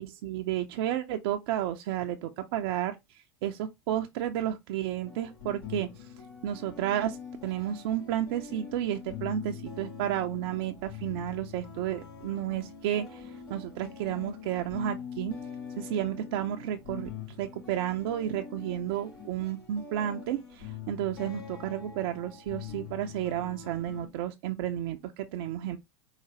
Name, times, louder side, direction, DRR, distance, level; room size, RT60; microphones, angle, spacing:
voice 1, 0.0-3.0 3.4-5.9 6.4-7.2 7.4-13.2 13.5-15.3 15.8-17.1 17.4-25.8, right 11 dB, 60° right, 0.5 m, -32 dB
sound 1, 5.0-24.1, left 7 dB, 75° left, 2.5 m, -44 dB
4.8 x 2.5 x 3.0 m
hypercardioid pair, 85°, 13 cm